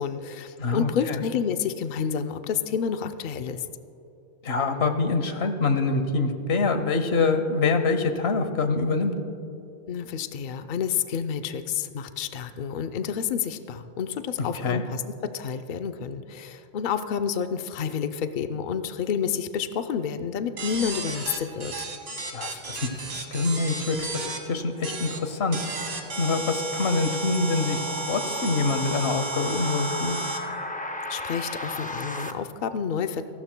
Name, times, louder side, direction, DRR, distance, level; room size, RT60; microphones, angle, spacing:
voice 1, 0.0-3.7 9.9-21.7 31.1-33.2, left 7 dB, 55° left, 8 dB, 0.7 m, -29 dB
voice 2, 0.6-1.2 4.4-9.1 14.4-14.8 22.3-25.6 26.2-27.8 28.1-30.2, left 3 dB, 90° left, 8 dB, 1.2 m, -25 dB
sound 1, 20.6-24.4 24.8-25.2 25.5-30.4, right 3 dB, 85° right, 1.6 m, -33 dB
sound 2, 23.6-32.3, left 1 dB, 10° left, 0.4 m, -36 dB
29.0 x 12.5 x 2.2 m, 2.8 s
omnidirectional pair, 1.0 m